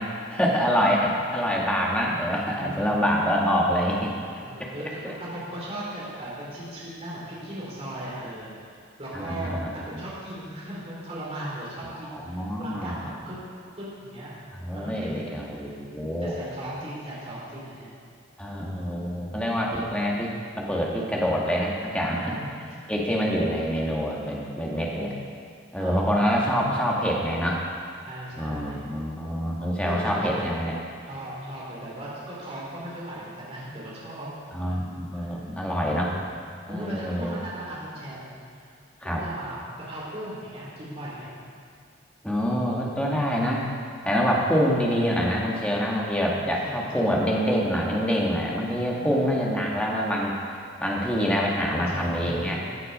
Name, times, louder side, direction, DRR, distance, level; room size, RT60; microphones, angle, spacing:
voice 1, 0.0-4.1 4.6-4.7 5.0-5.1 9.1-10.0 11.9-13.1 14.5-16.3 18.4-22.3 22.9-25.1 25.7-27.7 28.4-30.7 34.5-36.2 36.7-37.4 39.0-39.2 42.2-43.7 44.1-50.4 50.8-52.6, equal, 5° left, -3 dB, 1.8 m, -26 dB
voice 2, 2.6-2.9 4.4-8.7 9.0-13.4 13.8-14.3 14.7-15.6 15.9-17.9 19.0-19.1 22.1-22.8 25.8-26.9 28.0-28.8 29.8-30.5 31.1-34.3 34.7-34.8 35.1-35.3 36.7-38.4 39.0-39.6 39.9-41.3 44.7-44.8 46.3-47.1 48.9-49.4 51.6-52.7, right 1 dB, 30° right, -7 dB, 3.7 m, -38 dB
16.0 x 8.3 x 5.5 m, 2.3 s
head